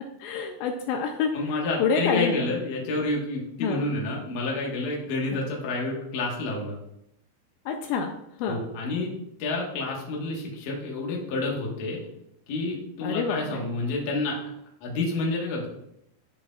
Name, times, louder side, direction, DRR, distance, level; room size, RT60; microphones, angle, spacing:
voice 1, 0.2-1.4 1.8-2.5 3.6-3.9 5.3-5.4 7.7-8.1 8.4-8.6 13.0-13.6, left 6 dB, 80° left, 4 dB, 2.7 m, -27 dB
voice 2, 1.3-6.8 8.5-9.1 9.4-12.0 12.5-14.4 14.8-15.7, left 2 dB, 60° left, -2 dB, 2.3 m, -29 dB
13.0 x 5.1 x 2.4 m, 0.79 s
omnidirectional pair, 5.3 m